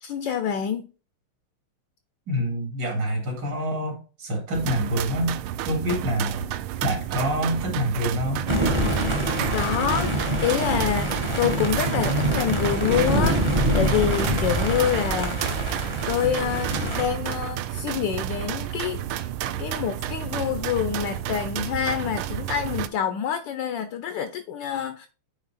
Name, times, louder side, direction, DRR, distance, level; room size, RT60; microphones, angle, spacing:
voice 1, 0.0-0.9 9.5-15.4 16.1-19.3 19.6-25.1, left 8 dB, 75° left, 1.1 m, -27 dB
voice 2, 2.3-5.4 5.6-6.5 6.8-8.5, equal, 55° right, 2.4 m, -26 dB
sound 1, 4.5-22.9, right 12 dB, 80° right, 1.4 m, -31 dB
sound 2, 8.5-17.1, equal, 30° right, 0.5 m, -25 dB
9.3 x 3.2 x 4.0 m
omnidirectional pair, 2.4 m